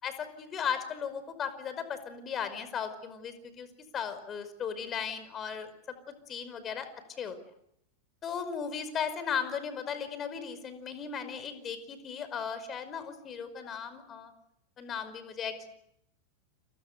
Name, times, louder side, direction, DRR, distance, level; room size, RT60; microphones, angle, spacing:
voice 1, 0.0-3.7 3.9-6.9 7.2-7.4 8.2-14.3 14.8-15.7, left 7 dB, 25° left, 11 dB, 5.3 m, -36 dB
29.5 x 29.5 x 6.9 m, 0.75 s
figure-of-eight pair, 90°, 0 cm